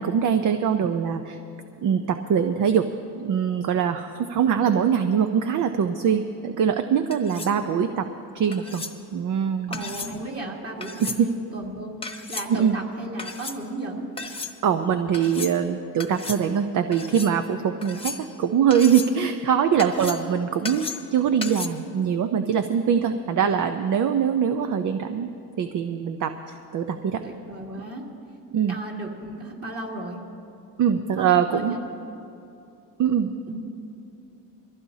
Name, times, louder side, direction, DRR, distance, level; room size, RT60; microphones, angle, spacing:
voice 1, 0.0-1.4 1.8-2.9 3.1-8.1 8.3-8.8 9.1-9.8 11.0-11.3 12.5-12.8 14.6-25.3 25.6-27.2 28.5-28.8 30.8-31.8 33.0-33.3, right 7 dB, 55° right, 8 dB, 0.7 m, -23 dB
sound 1, 7.1-7.6 8.5-9.0 9.7-10.2 10.8-11.2 12.0-12.5 13.2-13.6 14.2-14.5 15.1-15.6 16.0-16.4 16.9-17.3 17.8-18.4 18.7-19.2 19.8-20.3 20.6-21.1 21.4-21.7, left 4 dB, 15° left, 1.1 m, -35 dB
voice 2, 9.7-14.1 19.9-20.1 27.2-28.1 28.7-30.2 31.2-31.9 33.5-33.6, right 2 dB, 35° right, -2 dB, 2.8 m, -35 dB
22.5 x 15.0 x 2.8 m, 2.7 s
cardioid pair, 95°, 38 cm